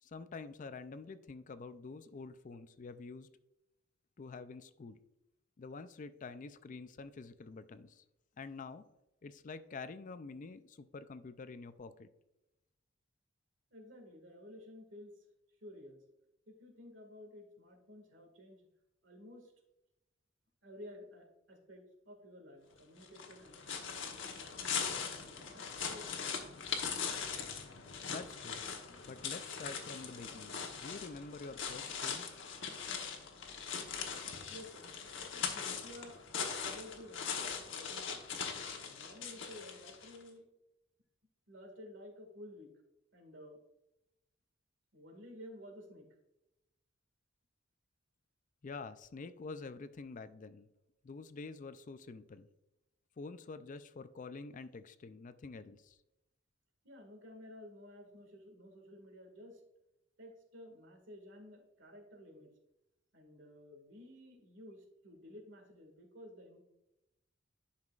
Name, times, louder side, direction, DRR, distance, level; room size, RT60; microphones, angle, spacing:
voice 1, 0.0-3.3 4.2-5.0 5.6-8.0 8.4-8.8 9.2-12.1 28.1-32.3 48.6-50.7 51.0-52.5 53.2-56.0, left 4 dB, 40° left, 12 dB, 0.4 m, -47 dB
voice 2, 13.7-15.1 15.6-16.0 16.5-18.6 19.0-19.5 20.6-26.3 34.5-35.0 35.3-38.2 38.9-40.5 41.5-42.7 43.1-43.6 44.9-46.1 56.8-59.6 60.2-62.5 63.1-66.6, left 1 dB, 65° right, 3 dB, 2.0 m, -53 dB
sound 1, 23.0-40.2, left 6 dB, 65° left, 1.1 m, -41 dB
10.5 x 5.7 x 2.4 m, 0.90 s
head